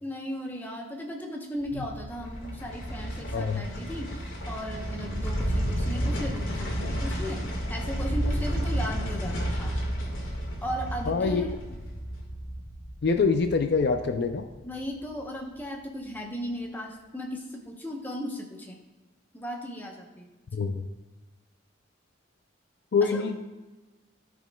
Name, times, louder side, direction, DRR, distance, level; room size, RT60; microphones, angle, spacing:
voice 1, 0.0-9.8 10.6-11.8 14.6-18.8 19.3-20.3 23.0-23.3, equal, 10° left, 0 dB, 0.8 m, -36 dB
sound 1, 1.6-14.8 15.1-15.2, equal, 80° left, 1.7 m, -32 dB
voice 2, 11.1-11.4 13.0-14.5 20.5-20.7 22.9-23.4, left 4 dB, 55° left, 7 dB, 0.4 m, -24 dB
12.5 x 5.0 x 2.2 m, 1.2 s
head